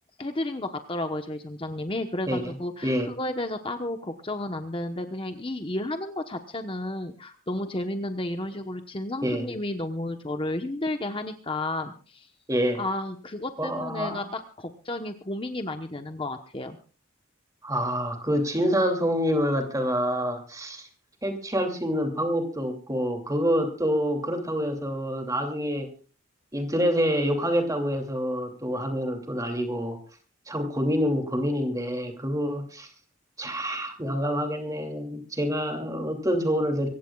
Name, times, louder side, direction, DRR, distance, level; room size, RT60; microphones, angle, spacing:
voice 1, 0.2-12.3 12.8-16.8, left 1 dB, 25° left, 6 dB, 1.0 m, -32 dB
voice 2, 12.5-12.8 13.6-14.2 17.6-20.9 21.2-25.9 26.5-30.0 30.5-32.9 33.4-36.9, equal, 15° right, 4 dB, 2.6 m, -27 dB
24.5 x 16.0 x 2.4 m, 0.38 s
head